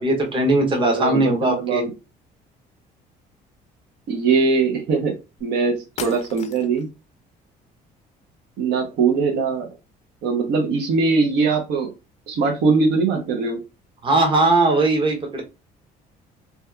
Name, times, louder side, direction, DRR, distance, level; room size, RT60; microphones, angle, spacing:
voice 1, 0.0-1.8 14.0-15.4, right 2 dB, 30° right, 1 dB, 0.8 m, -19 dB
voice 2, 0.9-1.9 4.1-6.9 8.6-9.7 10.2-11.9 12.3-13.6, right 4 dB, 80° right, 3 dB, 0.7 m, -21 dB
sound 1, 5.4-5.5 6.0-6.9, left 7 dB, 40° left, 0.4 m, -36 dB
2.7 x 2.3 x 2.3 m, 0.27 s
cardioid pair, 110°, 17 cm